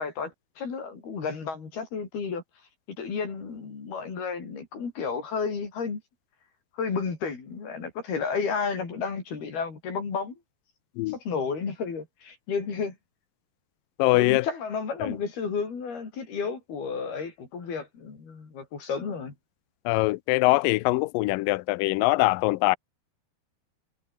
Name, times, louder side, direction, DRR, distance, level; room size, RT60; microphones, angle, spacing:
voice 1, 0.0-2.4 3.0-6.0 6.7-10.4 11.1-13.0 14.1-19.3, left 5 dB, 70° left, 7.5 m, -32 dB
voice 2, 14.0-14.5 15.0-15.1 19.9-22.8, left 21 dB, 90° left, 2.0 m, -23 dB
omnidirectional pair, 4.6 m